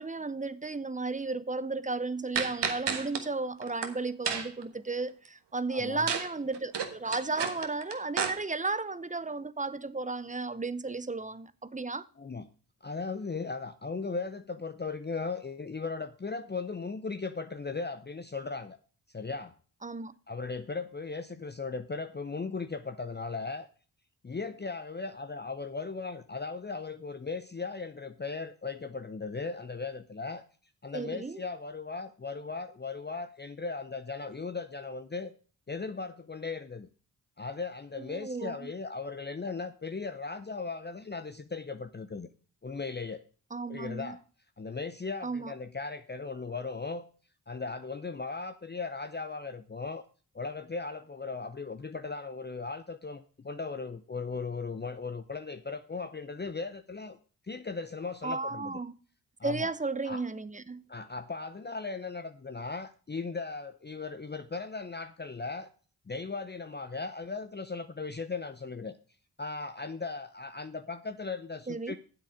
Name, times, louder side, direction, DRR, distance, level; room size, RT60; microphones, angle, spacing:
voice 1, 0.0-12.1 19.8-20.1 30.9-31.4 38.0-38.7 43.5-44.1 45.2-45.5 58.2-58.9 59.4-60.8 71.7-72.0, right 3 dB, 20° right, 0.7 m, -34 dB
sound 1, 2.4-3.2 3.6-3.9 4.3-4.6 6.1-6.3 6.5-8.3, right 6 dB, 70° right, 1.4 m, -31 dB
voice 2, 5.7-6.1 12.2-12.5 12.8-18.8 19.1-19.5 20.3-23.7 24.2-30.4 30.8-35.3 35.7-36.9 37.4-42.3 42.6-43.2 43.7-44.2 44.6-47.0 47.5-50.0 50.3-57.2 57.5-58.8 59.4-59.7 60.0-60.2 60.9-65.7 66.1-69.0 69.4-72.0, left 4 dB, 25° left, 0.7 m, -37 dB
9.0 x 7.6 x 5.1 m
supercardioid pair, 40°, 43 cm